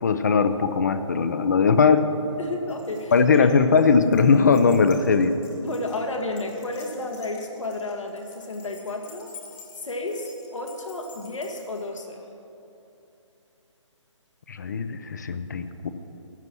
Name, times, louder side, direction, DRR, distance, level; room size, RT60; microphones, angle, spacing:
voice 1, 0.0-2.1 3.1-5.4 14.5-15.9, left 5 dB, 35° left, 10 dB, 0.6 m, -19 dB
voice 2, 2.4-3.1 3.4-3.5 5.6-9.3 9.7-12.3, left 2 dB, 75° left, 2 dB, 1.9 m, -32 dB
Keys jangling, 2.7-11.9, left 5 dB, 10° left, 0.9 m, -50 dB
15.0 x 9.6 x 6.1 m, 2.9 s
hypercardioid pair, 165°, 16 cm